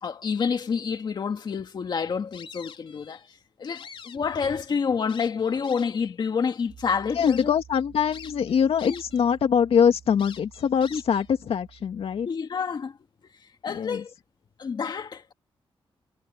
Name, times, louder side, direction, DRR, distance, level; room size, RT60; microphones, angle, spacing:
voice 1, 0.0-3.2 3.6-7.5 8.8-9.0 10.9-11.0 12.3-13.0 13.6-14.1 14.6-15.3, left 6 dB, 50° left, 2.2 m, -28 dB
sound 1, 2.3-3.3 3.6-4.7 5.1-6.1 6.7-6.8 7.2-7.5 8.1-9.3 9.6-9.7 10.2-11.3, left 7 dB, 65° left, 4.2 m, -45 dB
Piano, 6.7-12.3, right 8 dB, 80° right, 6.0 m, -51 dB
voice 2, 7.2-12.3 13.7-14.0, left 7 dB, 85° left, 2.3 m, -23 dB
wide cardioid pair, 175°, 10 cm